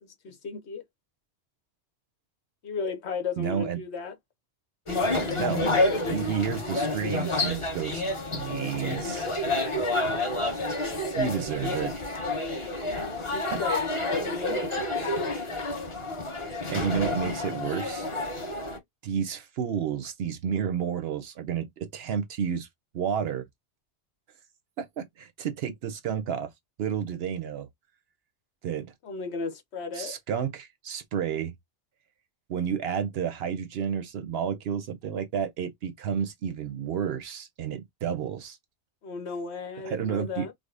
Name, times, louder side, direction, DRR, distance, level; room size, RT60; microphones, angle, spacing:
voice 1, 0.2-0.8 2.6-4.1 12.8-14.7 29.0-30.2 39.0-40.5, left 5 dB, 70° left, 1.1 m, -35 dB
voice 2, 3.4-3.8 5.2-5.7 6.0-8.0 8.3-9.3 10.6-10.9 11.2-12.0 13.5-13.6 15.5-15.7 16.7-18.1 19.0-22.7 22.9-23.5 24.8-26.5 26.8-27.7 28.6-28.9 29.9-31.5 32.5-38.6 39.8-40.5, right 8 dB, 70° right, 0.8 m, -31 dB
sound 1, 4.9-18.8, left 2 dB, 30° left, 1.1 m, -29 dB
4.8 x 2.0 x 2.4 m
omnidirectional pair, 1.2 m